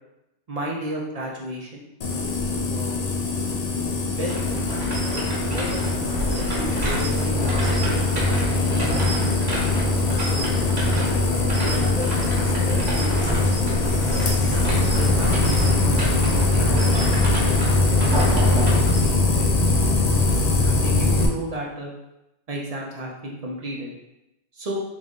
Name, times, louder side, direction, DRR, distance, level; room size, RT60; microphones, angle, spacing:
voice 1, 0.5-1.8 2.7-3.0 4.1-4.5 5.1-9.6 10.2-10.5 11.2-13.4 14.7-15.8 16.5-18.1 18.4-19.9 20.3-21.9 22.5-23.9 24.5-24.8, right 1 dB, 40° right, -2 dB, 0.6 m, -34 dB
sound 1, 2.0-21.3, left 3 dB, 50° left, 0.5 m, -22 dB
sound 2, 4.2-19.0, right 2 dB, 75° right, 1.2 m, -28 dB
3.9 x 2.5 x 3.6 m, 0.90 s
omnidirectional pair, 1.1 m